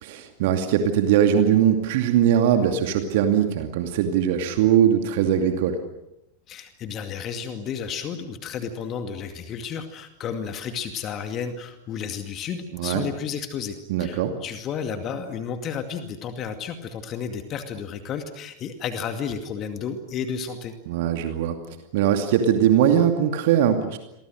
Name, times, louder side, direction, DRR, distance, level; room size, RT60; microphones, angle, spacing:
voice 1, 0.0-5.8 12.7-13.1 13.9-14.3 20.9-21.6 21.9-24.0, right 9 dB, 50° right, 6 dB, 2.5 m, -21 dB
voice 2, 6.5-20.7, left 7 dB, 30° left, 7 dB, 2.3 m, -32 dB
30.0 x 23.5 x 6.5 m, 0.87 s
figure-of-eight pair, 90°, 0 cm